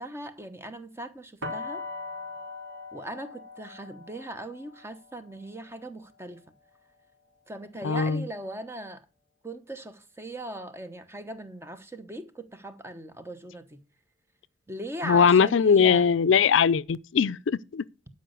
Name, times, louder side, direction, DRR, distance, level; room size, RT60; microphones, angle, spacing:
voice 1, 0.0-1.8 2.9-6.4 7.5-9.0 9.4-13.8 14.7-16.1, right 1 dB, 15° right, 1.0 m, -39 dB
sound 1, 1.4-7.3, left 3 dB, 85° right, 3.4 m, -41 dB
voice 2, 7.8-8.3 15.0-17.8, left 6 dB, 80° left, 0.4 m, -21 dB
12.0 x 5.5 x 6.5 m
head